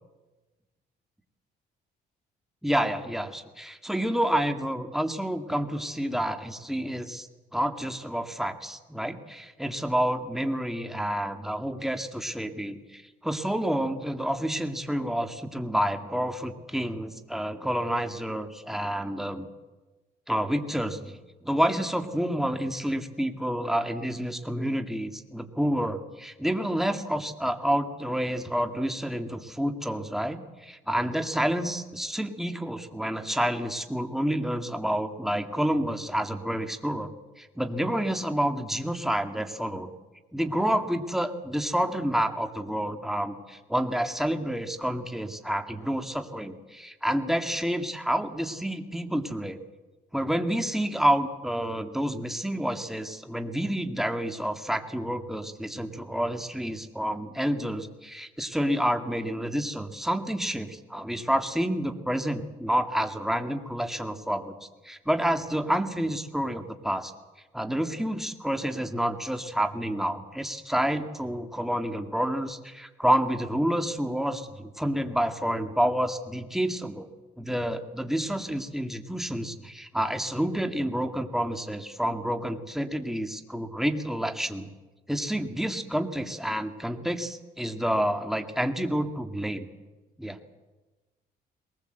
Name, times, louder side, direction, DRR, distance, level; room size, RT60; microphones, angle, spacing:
voice 1, 2.6-19.5 20.3-21.2 21.4-39.9 40.3-49.6 50.1-67.1 67.5-77.1 77.4-84.7 85.1-89.7 90.2-90.4, equal, ahead, 7 dB, 2.0 m, -29 dB
21.5 x 20.0 x 7.9 m, 1.2 s
cardioid pair, 90°, 20 cm